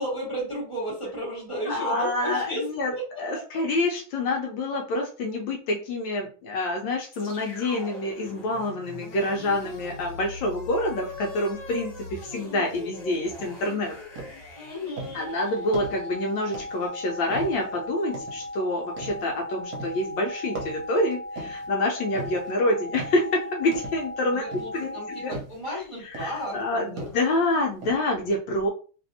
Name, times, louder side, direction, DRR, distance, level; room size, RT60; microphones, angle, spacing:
voice 1, 0.0-2.7 2.9-3.0 3.3-3.6 14.5-15.3 24.3-27.1, equal, 25° right, -6 dB, 0.7 m, -33 dB
voice 2, 1.7-2.9 3.2-14.0 15.1-24.4 24.7-25.3 25.7-25.8 26.0-28.7, left 2 dB, 75° left, 1 dB, 1.2 m, -27 dB
sound 1, 7.1-17.3, left 3 dB, 50° left, 1.2 m, -42 dB
sound 2, 13.4-13.7 14.2-14.5 15.0-15.3 15.7-16.1 16.5-16.9 17.3-17.7 18.1-18.5 19.0-19.3 19.7-20.1 20.5-21.7 22.1-22.5 22.9-23.3 23.7-24.1 24.5-24.9 25.3-25.6 26.1-26.5 27.0-27.4 27.8-28.0, right 3 dB, 60° right, 1.3 m, -38 dB
sound 3, 15.3-25.3, left 1 dB, 80° right, 1.4 m, -37 dB
3.3 x 2.5 x 2.6 m, 0.38 s
omnidirectional pair, 2.3 m